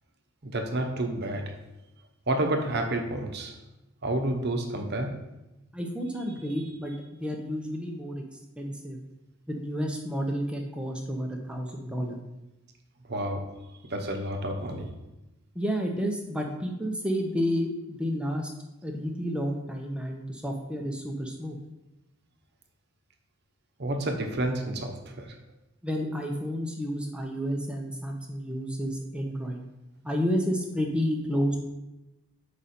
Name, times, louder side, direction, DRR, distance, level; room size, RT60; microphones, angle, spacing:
voice 1, 0.4-1.6 2.3-3.6 4.0-5.3 13.1-14.9 23.8-25.4, right 1 dB, 50° right, 4 dB, 0.9 m, -30 dB
voice 2, 5.7-8.2 8.6-9.0 9.5-12.2 15.6-18.5 18.8-21.6 25.8-29.6 30.0-31.6, equal, 5° right, 1 dB, 0.8 m, -30 dB
6.7 x 5.1 x 4.3 m, 0.97 s
head